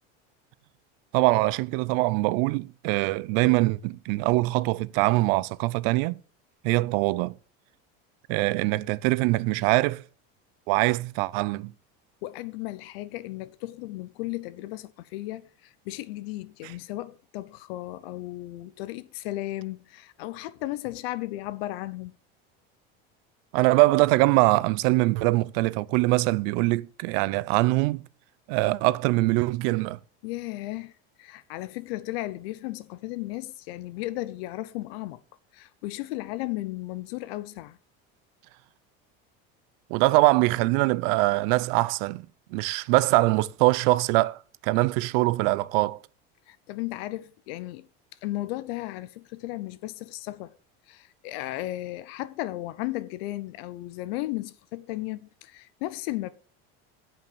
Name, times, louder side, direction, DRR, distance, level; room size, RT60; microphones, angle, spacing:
voice 1, 1.1-6.2 6.6-7.3 8.3-10.0 10.7-11.7 23.5-28.0 28.5-30.0 39.9-42.3 42.5-46.0, right 21 dB, 70° right, 0.6 m, -23 dB
voice 2, 12.2-22.2 30.2-30.9 31.2-35.2 35.5-37.8 46.5-47.9 48.2-50.5 50.9-56.3, left 17 dB, 80° left, 0.8 m, -35 dB
9.4 x 5.6 x 7.3 m
cardioid pair, 150°, 30 cm